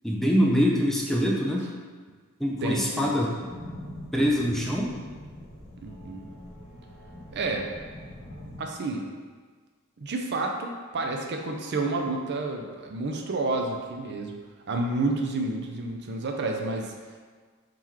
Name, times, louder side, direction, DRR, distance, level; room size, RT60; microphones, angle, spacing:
voice 1, 0.0-1.6 2.4-3.3 4.1-5.0, equal, ahead, -3 dB, 0.4 m, -24 dB
voice 2, 2.6-3.1 5.8-6.3 7.3-7.7 8.6-9.1 10.0-14.4 14.7-16.9, right 2 dB, 55° right, 2 dB, 0.5 m, -30 dB
sound 1, 3.4-8.6, left 1 dB, 35° left, 1.5 m, -43 dB
3.8 x 2.9 x 4.5 m, 1.5 s
head